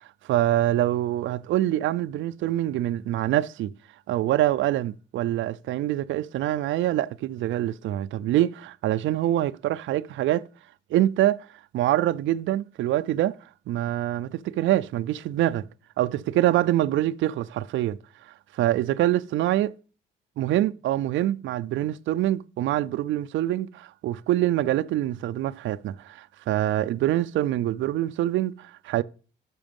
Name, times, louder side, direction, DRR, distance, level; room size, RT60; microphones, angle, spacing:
voice 1, 0.2-3.7 4.1-10.5 10.9-11.5 11.7-13.4 13.7-15.7 16.0-18.0 18.3-19.8 20.4-29.0, right 13 dB, 75° right, 0.4 m, -25 dB
6.2 x 5.8 x 5.2 m
cardioid pair, 90°, 20 cm